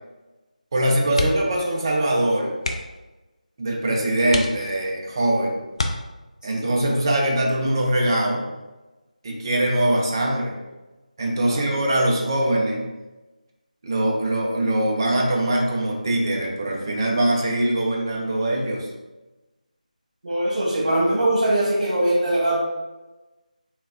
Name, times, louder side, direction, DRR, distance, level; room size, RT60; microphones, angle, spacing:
voice 1, 0.7-2.5 3.6-5.6 6.4-8.4 9.2-10.6 11.2-12.9 13.8-18.9, right 1 dB, 30° right, -1 dB, 0.6 m, -22 dB
sound 1, 1.1-1.6 1.9-2.1 2.6-3.1 3.7-3.8 4.3-5.0 5.7-6.5 8.1-8.4 8.7-8.8, left 2 dB, 45° left, 0.4 m, -29 dB
voice 2, 20.2-22.6, right 1 dB, 70° right, -6 dB, 1.2 m, -21 dB
3.8 x 3.4 x 2.4 m, 1.1 s
figure-of-eight pair, 165°, 4 cm